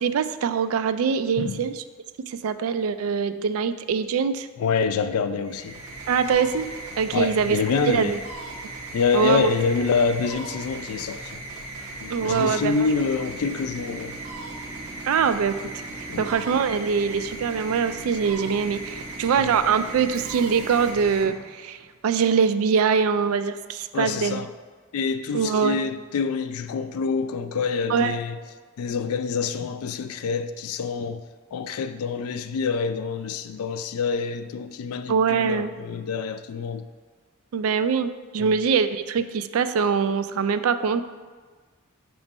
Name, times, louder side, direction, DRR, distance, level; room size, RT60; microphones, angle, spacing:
voice 1, 0.0-1.8 2.3-4.5 6.1-6.7 7.0-7.6 7.9-8.2 9.1-9.6 12.1-12.7 15.0-15.6 16.0-24.4 25.3-25.8 27.9-28.2 35.1-35.7 37.5-41.0, right 6 dB, 70° right, 0.3 m, -23 dB
voice 2, 1.4-1.7 4.6-5.8 7.1-8.1 8.9-11.4 12.0-14.2 16.1-16.3 19.3-19.5 23.9-24.5 24.9-28.4 28.8-31.2 31.5-36.8 38.4-38.5, left 5 dB, 85° left, 0.3 m, -26 dB
sound 1, 5.4-21.9, right 2 dB, 85° right, 1.1 m, -38 dB
Train / Subway metro underground, 12.1-20.9, right 2 dB, 35° right, 0.6 m, -43 dB
5.9 x 3.1 x 5.3 m
head